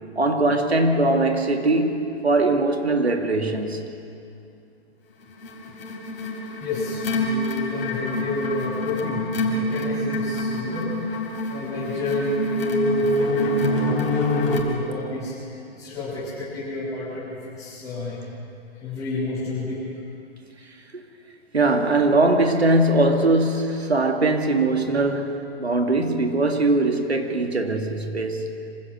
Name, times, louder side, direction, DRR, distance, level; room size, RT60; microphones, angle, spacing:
voice 1, 0.2-3.8 21.5-28.4, right 2 dB, 85° right, 2.1 m, -21 dB
sound 1, 5.4-14.6, left 1 dB, 60° left, 4.0 m, -25 dB
voice 2, 6.6-11.1 11.5-18.2 18.7-19.9, left 2 dB, 10° left, 6.6 m, -30 dB
26.0 x 16.0 x 6.8 m
figure-of-eight pair, 120°, 31 cm